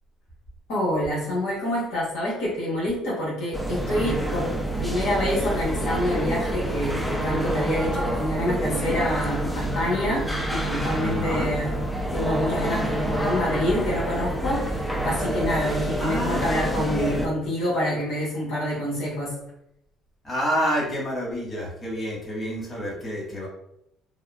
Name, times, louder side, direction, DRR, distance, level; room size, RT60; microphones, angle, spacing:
voice 1, 0.7-4.5 4.8-10.2 10.5-11.7 12.1-19.3, left 1 dB, 80° left, -6 dB, 1.1 m, -27 dB
sound 1, 3.5-17.3, right 1 dB, 5° left, 0.5 m, -27 dB
voice 2, 11.0-11.5 16.0-17.3 20.2-23.5, equal, 25° left, -4 dB, 1.5 m, -29 dB
3.5 x 2.1 x 2.3 m, 0.78 s
supercardioid pair, 75°, 0 cm